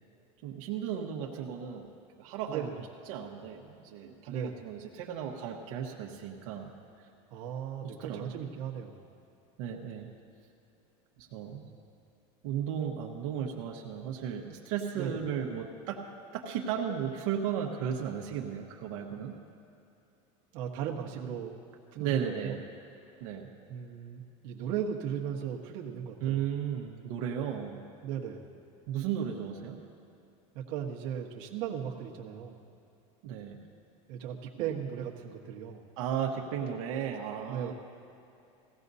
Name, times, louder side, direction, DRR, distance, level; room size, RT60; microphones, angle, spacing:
voice 1, 0.4-1.9 2.2-2.7 3.1-6.7 7.0-7.1 8.0-8.3 9.6-10.1 11.2-11.6 12.4-16.0 16.3-19.3 22.0-22.6 23.2-23.5 26.2-27.8 28.9-29.8 33.2-33.6 34.6-34.7 36.0-37.7, right 8 dB, 75° right, -1 dB, 1.2 m, -35 dB
voice 2, 2.5-2.8 4.3-4.6 7.3-9.1 11.4-11.8 14.9-15.2 20.5-21.5 21.9-22.2 22.4-22.6 23.7-26.5 28.0-28.5 30.5-32.6 34.1-35.9 37.5-37.7, right 8 dB, 60° right, -1 dB, 1.4 m, -37 dB
19.0 x 15.5 x 2.7 m, 2.7 s
supercardioid pair, 150°, 17 cm